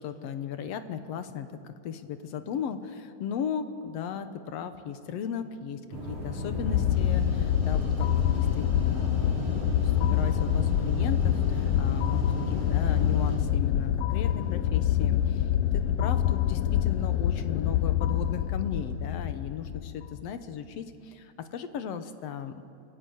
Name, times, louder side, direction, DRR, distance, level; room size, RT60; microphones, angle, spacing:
voice 1, 0.0-5.8 6.1-22.6, left 7 dB, 65° left, 9 dB, 1.9 m, -36 dB
sound 1, 5.9-13.4, right 1 dB, 80° right, 8.4 m, -35 dB
sound 2, 6.1-20.3, left 11 dB, 90° left, 1.3 m, -26 dB
26.0 x 17.0 x 8.0 m, 2.9 s
omnidirectional pair, 3.4 m